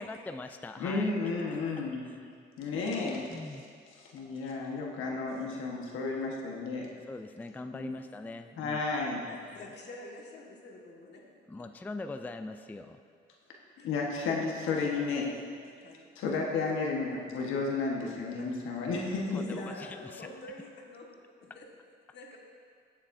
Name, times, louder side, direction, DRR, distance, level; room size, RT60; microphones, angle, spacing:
voice 1, 0.0-1.1 2.7-2.9 3.3-3.6 7.1-8.8 11.5-13.0 19.3-20.3, left 2 dB, 10° left, 7 dB, 0.3 m, -42 dB
voice 2, 0.8-2.1 2.6-3.3 4.1-6.9 7.7-7.9 8.6-9.2 13.8-15.3 16.2-19.2, left 4 dB, 85° left, -1 dB, 1.3 m, -32 dB
voice 3, 9.3-11.2 13.8-13.9 15.8-16.0 18.4-18.5 19.2-21.1 21.4-21.7 22.1-22.4, left 2 dB, 60° left, -1 dB, 1.7 m, -46 dB
15.5 x 7.3 x 2.6 m, 2.1 s
cardioid pair, 90°, 20 cm